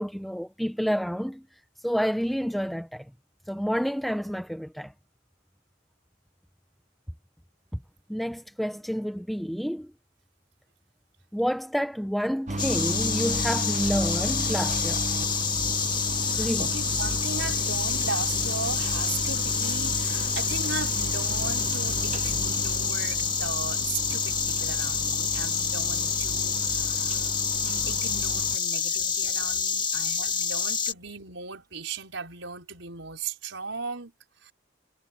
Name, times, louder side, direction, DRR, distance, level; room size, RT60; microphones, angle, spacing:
voice 1, 0.0-1.4 1.8-3.1 3.5-4.9 8.1-9.9 11.3-15.0 16.4-16.7, equal, ahead, 1.0 m, -29 dB
sound 1, 12.5-28.6, right 2 dB, 35° right, 1.3 m, -34 dB
Insect, 12.6-30.9, left 6 dB, 25° left, 1.8 m, -28 dB
Water tap faucet / Bathtub (filling or washing), 16.1-30.5 31.0-31.1 31.6-31.7 32.0-32.1, right 5 dB, 20° right, 3.2 m, -50 dB
voice 2, 16.2-27.3 27.6-34.1 34.4-34.5, right 4 dB, 80° right, 5.1 m, -37 dB
head